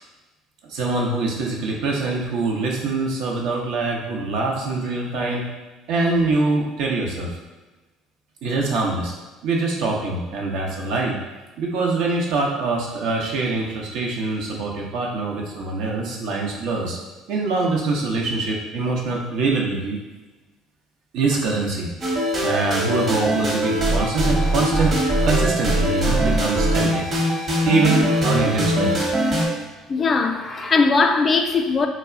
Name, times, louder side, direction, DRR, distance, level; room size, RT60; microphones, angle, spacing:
voice 1, 0.7-5.5 5.9-7.3 8.4-9.1 9.4-11.2 11.6-17.0 17.3-20.0 21.1-21.9 22.4-25.0 25.2-27.1 27.7-29.0, right 3 dB, 70° right, -1 dB, 0.6 m, -24 dB
sound 1, 22.0-29.5, right 1 dB, 40° right, 0.9 m, -21 dB
voice 2, 29.9-31.9, left 4 dB, 35° left, 4 dB, 0.3 m, -19 dB
2.3 x 2.0 x 3.6 m, 1.2 s
hypercardioid pair, 70°, 0 cm